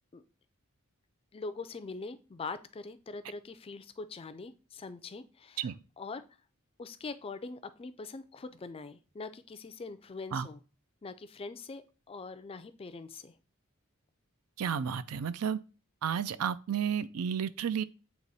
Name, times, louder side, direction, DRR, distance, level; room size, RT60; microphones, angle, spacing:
voice 1, 1.3-6.2 6.8-10.6 11.0-13.4, left 4 dB, 25° left, 0.4 m, -43 dB
voice 2, 14.6-15.6 16.0-17.8, right 7 dB, 90° right, 0.4 m, -32 dB
7.8 x 3.0 x 4.1 m
head